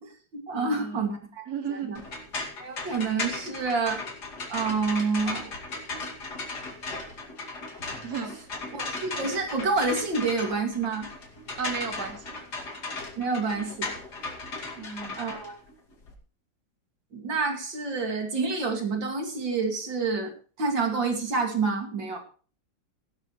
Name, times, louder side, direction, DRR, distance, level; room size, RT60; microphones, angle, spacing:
voice 1, 0.0-2.0 2.6-4.0 4.5-5.5 8.7-11.1 13.2-13.9 15.2-15.6 17.1-20.3 20.6-22.2, right 4 dB, 85° right, 3 dB, 3.2 m, -28 dB
voice 2, 0.5-1.1 1.5-2.0 8.0-8.5 11.6-12.2 14.8-15.2, right 6 dB, 55° right, 3 dB, 2.7 m, -34 dB
sound 1, 2.0-16.2, left 3 dB, 60° left, 3.0 m, -36 dB
16.5 x 12.0 x 3.2 m, 0.38 s
omnidirectional pair, 2.0 m